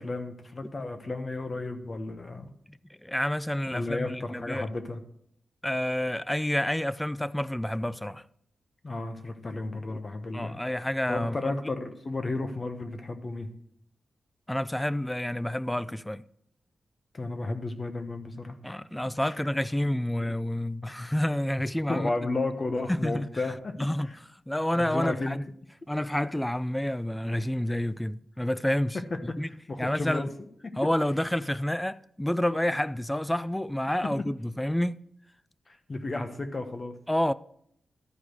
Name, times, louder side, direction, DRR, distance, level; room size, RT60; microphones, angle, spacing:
voice 1, 0.0-2.5 3.7-5.0 8.8-10.6 11.1-13.5 17.1-18.8 21.9-23.8 24.7-25.4 29.3-29.4 29.7-30.3 35.7-36.9, left 2 dB, 40° left, 1.1 m, -33 dB
voice 2, 2.7-4.7 5.6-8.3 10.3-11.6 14.5-16.2 18.6-22.1 22.9-23.3 23.8-24.1 24.5-25.4 25.9-29.5 29.8-30.3 30.8-35.0 37.1-37.3, left 1 dB, 10° left, 0.3 m, -29 dB
12.0 x 4.9 x 6.3 m
cardioid pair, 80°, 0 cm